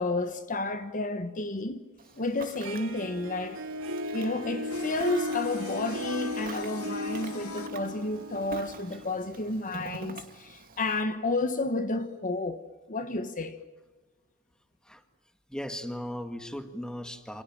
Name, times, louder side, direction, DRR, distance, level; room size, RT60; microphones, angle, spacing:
voice 1, 0.0-1.8 2.2-3.6 4.1-13.6, left 2 dB, 35° left, 1.4 m, -31 dB
Ocean, 2.0-11.0, right 3 dB, 40° right, 2.4 m, -46 dB
Harp, 2.6-9.5, equal, 65° right, 3.3 m, -36 dB
Singing, 4.7-9.7, left 5 dB, 75° left, 2.6 m, -43 dB
voice 2, 15.5-17.4, equal, 5° left, 1.9 m, -37 dB
28.5 x 27.5 x 7.4 m
head